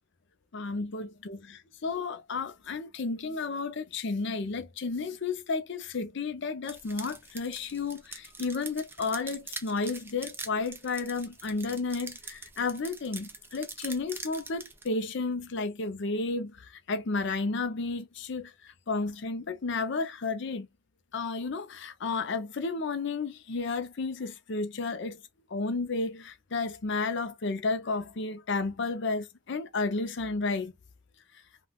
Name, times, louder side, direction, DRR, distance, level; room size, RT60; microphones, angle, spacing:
voice 1, 0.5-18.5 18.9-20.7 21.1-25.2 25.5-30.7, left 3 dB, 60° left, 0.6 m, -32 dB
sound 1, 6.7-14.9, right 3 dB, 10° right, 0.4 m, -43 dB
3.5 x 2.3 x 2.3 m
head